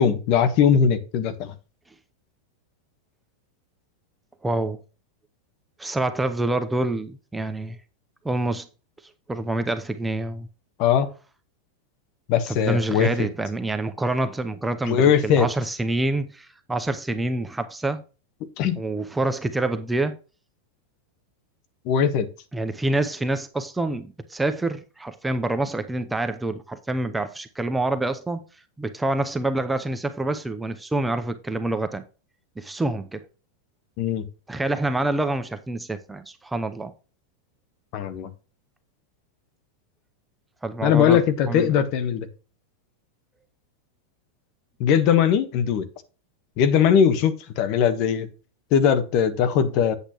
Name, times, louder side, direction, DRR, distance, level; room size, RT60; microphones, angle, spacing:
voice 1, 0.0-1.5 10.8-11.1 12.3-13.1 14.8-15.5 18.6-18.8 21.8-22.3 34.0-34.3 37.9-38.3 40.8-42.3 44.8-45.9 46.6-48.3 48.7-49.9, left 8 dB, 50° left, 1.3 m, -20 dB
voice 2, 4.4-4.8 5.8-7.8 8.2-8.7 9.3-10.5 12.5-18.0 18.8-20.1 22.5-28.4 28.8-32.0 32.6-33.2 34.5-36.9 40.6-41.2 41.5-41.8, right 2 dB, 10° right, 0.7 m, -26 dB
8.2 x 8.0 x 3.0 m
hypercardioid pair, 125°, 0 cm